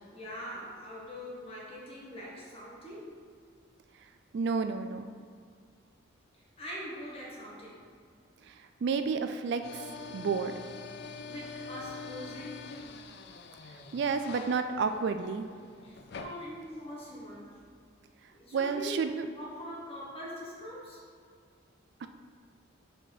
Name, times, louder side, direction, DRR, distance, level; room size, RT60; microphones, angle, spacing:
voice 1, 0.1-3.2 6.3-7.9 11.0-12.7 15.8-17.6 18.3-19.0 19.4-21.0, equal, 30° left, -5 dB, 1.7 m, -43 dB
voice 2, 4.3-5.1 8.5-8.6 8.8-9.9 10.1-10.5 13.9-15.5 18.5-19.3 22.0-22.1, right 5 dB, 60° right, 8 dB, 0.3 m, -30 dB
sound 1, 9.6-17.4, left 4 dB, 55° left, 0.4 m, -45 dB
6.4 x 4.4 x 4.9 m, 2.1 s
head